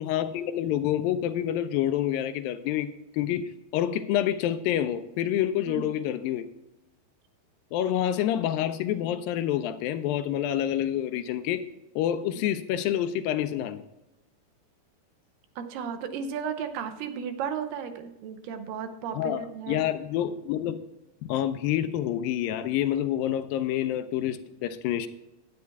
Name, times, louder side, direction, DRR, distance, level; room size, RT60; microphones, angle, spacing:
voice 1, 0.0-6.4 7.7-11.6 12.0-13.8 19.1-19.4 19.7-20.8 21.3-25.1, left 11 dB, 85° left, 2.1 m, -27 dB
voice 2, 15.6-19.9, right 7 dB, 75° right, 2.2 m, -34 dB
10.5 x 9.5 x 3.4 m
omnidirectional pair, 4.6 m